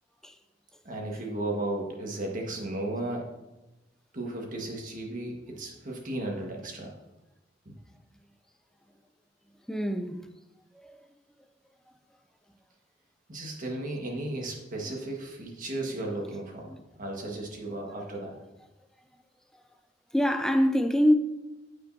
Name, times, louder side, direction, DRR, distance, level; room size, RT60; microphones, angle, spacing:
voice 1, 0.9-3.3 4.1-6.9 7.7-7.8 13.3-16.7 17.0-18.4, right 2 dB, 50° right, 1.6 m, -35 dB
voice 2, 9.7-10.2 10.7-11.0 16.7-16.8 20.1-21.1, equal, 5° left, 0.5 m, -24 dB
13.0 x 5.2 x 2.7 m
head